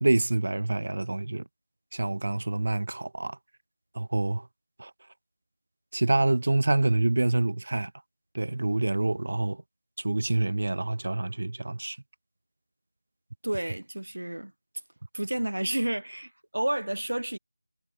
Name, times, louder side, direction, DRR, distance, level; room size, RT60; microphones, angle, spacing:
voice 1, 0.0-1.4 1.9-3.4 4.0-4.5 4.8-4.9 5.9-7.9 8.3-9.6 10.0-12.0, right 2 dB, 55° right, 0.5 m, -26 dB
voice 2, 13.4-14.5 15.1-17.4, right 1 dB, 80° right, 1.4 m, -30 dB
figure-of-eight pair, 170°, 0 cm